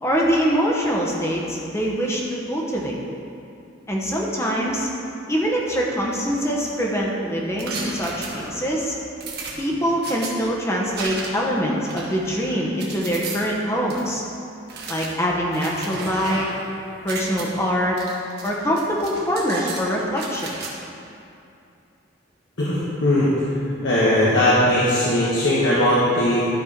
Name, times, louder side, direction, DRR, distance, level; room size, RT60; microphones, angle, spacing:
voice 1, 0.0-3.0 3.9-4.9 5.3-9.0 9.6-14.2 14.9-16.5 17.0-18.0 18.4-20.6, equal, 15° left, -3 dB, 0.9 m, -24 dB
sound 1, 7.6-8.7 9.2-10.3 10.9-11.5 11.9-13.4 13.9-14.0 14.7-16.7 17.0-17.4 18.0-18.5 18.8-19.8 20.2-20.7, right 3 dB, 50° right, 1.2 m, -34 dB
voice 2, 22.6-23.3 23.8-26.5, left 1 dB, 65° left, -8 dB, 1.3 m, -19 dB
12.0 x 4.3 x 5.1 m, 2.7 s
head